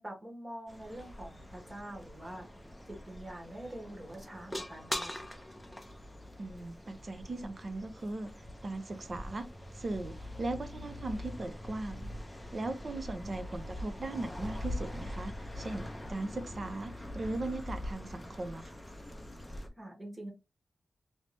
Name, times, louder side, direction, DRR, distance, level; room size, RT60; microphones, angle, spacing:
voice 1, 0.0-2.5 2.9-5.3 13.1-13.5 19.8-20.3, right 1 dB, 20° right, 1.2 m, -45 dB
sound 1, 0.7-19.7, left 1 dB, 10° left, 0.6 m, -43 dB
voice 2, 6.4-8.3 8.6-9.5 9.7-12.1 12.5-18.7, right 2 dB, 35° right, 0.6 m, -38 dB
3.1 x 2.7 x 3.3 m
wide cardioid pair, 150°, 0 cm